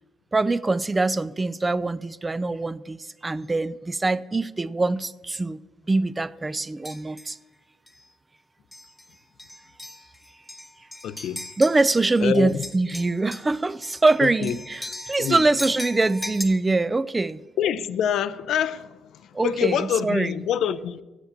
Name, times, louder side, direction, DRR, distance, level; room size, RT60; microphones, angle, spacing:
voice 1, 0.3-5.6 5.9-7.4 11.6-17.4 19.3-20.3, right 2 dB, 20° right, 0.3 m, -23 dB
sound 1, 6.8-7.4 7.9-8.0 8.7-9.1 9.4-12.2 12.5-16.4, left 1 dB, 5° left, 1.0 m, -38 dB
voice 2, 11.0-11.5 12.2-12.5 14.2-14.5 15.2-15.4 17.6-19.0 19.4-21.0, left 9 dB, 75° left, 0.4 m, -25 dB
8.0 x 7.1 x 7.3 m
cardioid pair, 90°, 0 cm